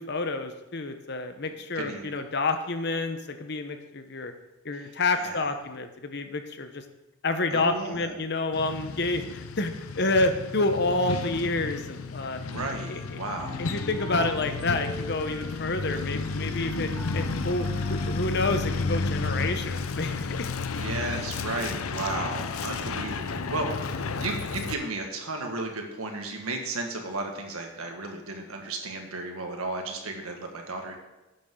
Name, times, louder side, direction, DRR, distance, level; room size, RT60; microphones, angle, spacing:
voice 1, 0.0-4.3 4.6-6.8 7.2-12.4 12.9-13.0 13.6-20.5, left 2 dB, 50° left, 7 dB, 0.9 m, -29 dB
voice 2, 1.8-2.1 4.7-5.5 7.5-8.1 12.2-13.6 20.8-31.0, right 2 dB, 85° right, 3 dB, 1.7 m, -34 dB
Truck, 8.5-24.7, left 4 dB, 80° left, 0.6 m, -32 dB
sound 1, 12.7-18.4, right 1 dB, 5° left, 1.4 m, -42 dB
12.0 x 8.6 x 3.8 m, 1.0 s
head